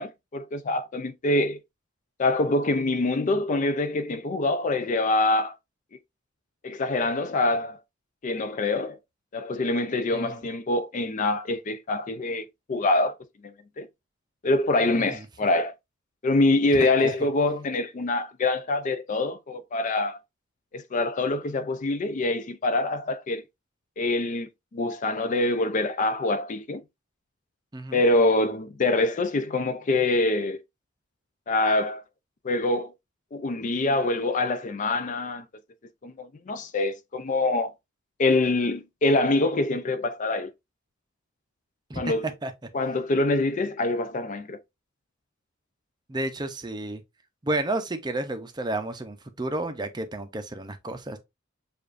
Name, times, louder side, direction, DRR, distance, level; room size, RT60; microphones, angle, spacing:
voice 1, 0.0-1.6 2.2-5.5 6.6-7.8 8.2-9.0 9.3-13.1 13.4-13.9 14.4-15.7 16.2-20.2 20.7-23.4 24.0-26.8 27.9-30.6 31.5-32.0 32.4-32.9 33.3-35.4 36.0-37.7 38.2-40.5 42.0-42.3 42.7-44.6, left 2 dB, 40° left, 0.4 m, -25 dB
voice 2, 14.9-15.2 17.0-17.1 27.7-28.0 41.9-42.1 42.4-42.5 46.1-47.0 47.4-51.2, right 2 dB, 20° right, 0.5 m, -31 dB
6.8 x 2.5 x 2.5 m
head